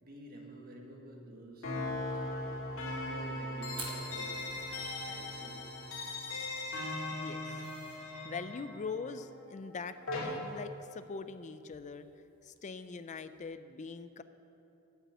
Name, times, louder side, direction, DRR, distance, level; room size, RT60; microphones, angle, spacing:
voice 1, 0.0-4.5 5.1-5.6, right 1 dB, 45° right, 0 dB, 1.7 m, -51 dB
sound 1, 1.6-10.2, left 2 dB, 65° left, 2.5 m, -39 dB
Fire, 3.7-13.5, right 3 dB, 20° right, 1.4 m, -53 dB
voice 2, 7.1-7.6 8.2-12.1 12.4-14.2, left 4 dB, 35° left, 11 dB, 0.4 m, -42 dB
8.2 x 8.2 x 8.9 m, 2.9 s
head